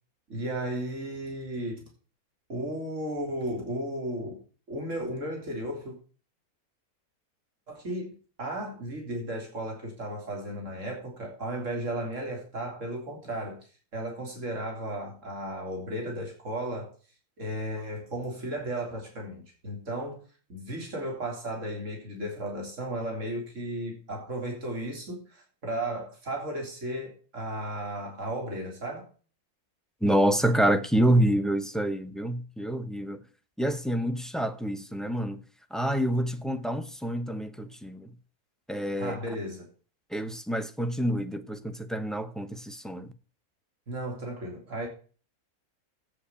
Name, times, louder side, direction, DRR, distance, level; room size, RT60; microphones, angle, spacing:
voice 1, 0.3-1.8 2.5-4.4 4.7-5.9 7.7-13.6 13.9-16.9 17.4-20.2 20.5-29.1 38.9-39.7 43.9-44.9, right 1 dB, 55° right, 3.8 m, -34 dB
voice 2, 30.0-33.2 33.6-35.4 35.7-38.1 38.7-39.2 40.1-43.1, right 1 dB, ahead, 0.5 m, -27 dB
8.6 x 7.8 x 8.5 m
omnidirectional pair, 1.6 m